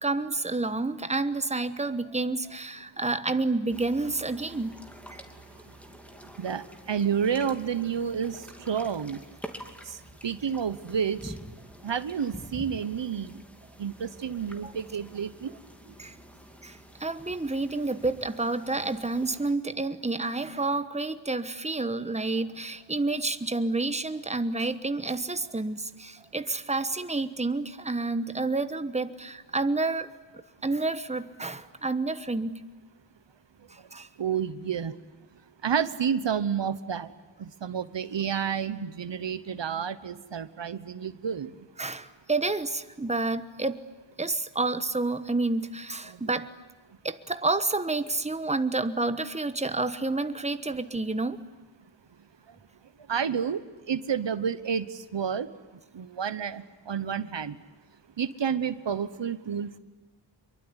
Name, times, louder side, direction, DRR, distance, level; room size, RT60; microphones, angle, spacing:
voice 1, 0.0-4.7 5.1-5.2 14.6-14.7 16.0-16.1 16.6-30.1 30.6-32.6 33.7-34.1 41.8-43.9 44.2-46.5 47.0-51.4, right 3 dB, 15° right, 11 dB, 1.2 m, -29 dB
sound 1, 3.7-19.5, equal, 5° left, 2.7 m, -47 dB
voice 2, 6.4-9.2 9.9-10.0 10.2-11.3 11.8-13.3 13.8-15.5 34.2-34.9 35.6-37.1 37.4-41.5 46.1-46.2 53.1-53.6 53.9-55.5 55.9-57.6 58.2-59.8, right 7 dB, 70° right, 14 dB, 1.1 m, -30 dB
25.5 x 23.0 x 9.9 m, 1.2 s
wide cardioid pair, 85°, 45 cm